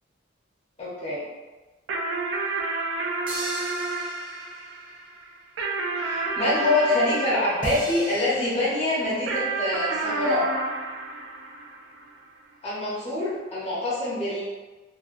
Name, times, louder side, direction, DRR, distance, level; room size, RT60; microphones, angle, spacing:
voice 1, 0.8-1.2 6.0-10.5 12.6-14.4, left 2 dB, 35° left, -8 dB, 1.0 m, -25 dB
sound 1, 1.9-8.6 9.3-12.1, right 3 dB, 80° right, 0.4 m, -30 dB
sound 2, 3.3-4.8 7.6-9.2, right 1 dB, 30° right, 0.6 m, -37 dB
2.4 x 2.2 x 2.5 m, 1.2 s
head